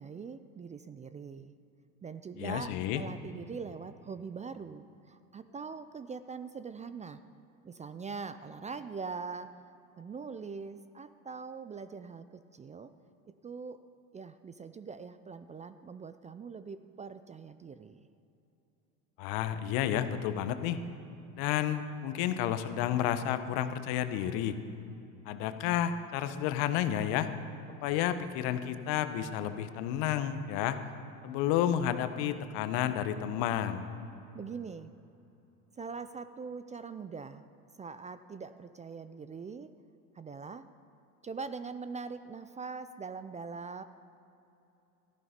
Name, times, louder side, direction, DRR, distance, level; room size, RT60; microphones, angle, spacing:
voice 1, 0.0-1.5 2.0-7.2 7.6-9.5 10.0-12.9 13.3-13.8 14.1-18.1 34.3-34.9 35.8-37.4 37.8-39.7 40.1-40.7 41.2-43.8, right 5 dB, 20° right, 12 dB, 0.4 m, -42 dB
voice 2, 2.4-3.0 19.2-20.8 21.4-24.6 25.2-27.3 27.8-30.8 31.2-33.9, left 10 dB, 65° left, 10 dB, 1.1 m, -31 dB
14.5 x 11.0 x 5.1 m, 2.9 s
hypercardioid pair, 85°, 41 cm